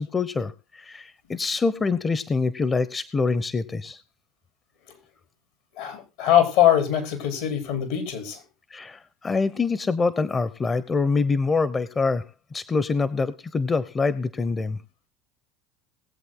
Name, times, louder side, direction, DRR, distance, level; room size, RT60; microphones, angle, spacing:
voice 1, 0.0-4.0 8.7-12.3 12.5-14.8, left 4 dB, 25° left, 17 dB, 0.9 m, -25 dB
voice 2, 5.7-8.4, left 11 dB, 75° left, 8 dB, 4.0 m, -22 dB
20.5 x 8.0 x 3.8 m, 0.29 s
hypercardioid pair, 85°, 0 cm